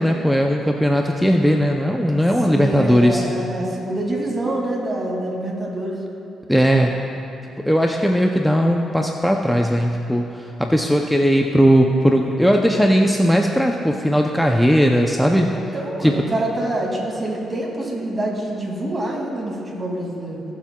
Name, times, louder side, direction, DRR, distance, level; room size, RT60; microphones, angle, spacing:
voice 1, 0.0-3.2 6.5-6.9 7.7-15.5 16.0-16.1, equal, ahead, 1 dB, 0.5 m, -18 dB
voice 2, 2.5-6.0 15.5-20.4, right 1 dB, 20° right, -3 dB, 2.3 m, -26 dB
19.0 x 7.3 x 2.3 m, 2.8 s
cardioid pair, 90°, 0 cm